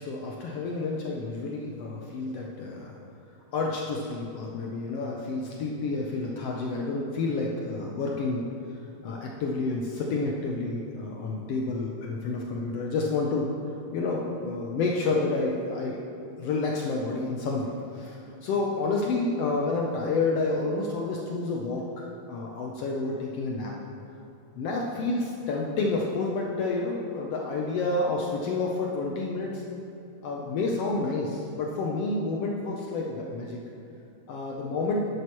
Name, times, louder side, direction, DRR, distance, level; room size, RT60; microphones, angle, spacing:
voice 1, 0.0-3.0 3.5-8.5 9.0-13.5 13.9-16.0 16.4-23.7 24.6-29.6 30.2-33.6 34.3-35.1, left 3 dB, 75° left, -1 dB, 1.5 m, -29 dB
10.5 x 10.0 x 3.0 m, 2.8 s
omnidirectional pair, 3.4 m